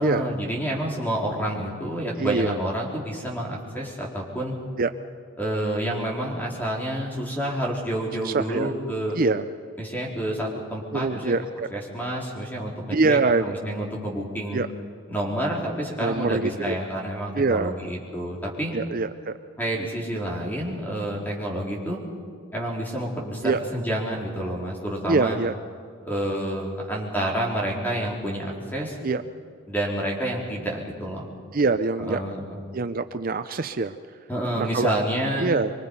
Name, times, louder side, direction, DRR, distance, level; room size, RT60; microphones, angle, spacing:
voice 1, 0.0-4.6 5.4-9.2 9.8-11.3 11.7-14.6 15.1-18.7 19.6-22.0 22.5-25.4 26.0-29.0 29.7-31.3 32.0-32.6 34.3-35.5, right 1 dB, 10° left, -3 dB, 4.1 m, -29 dB
voice 2, 2.2-2.6 4.8-4.9 8.2-8.7 9.2-9.4 10.9-11.7 12.9-13.4 14.5-14.7 16.0-16.8 17.4-17.7 18.7-19.3 23.4-23.6 25.1-25.5 29.0-29.2 31.5-32.2 32.7-33.9 34.6-34.9 35.4-35.7, right 3 dB, 45° right, 10 dB, 0.5 m, -24 dB
25.0 x 24.0 x 5.5 m, 2.3 s
head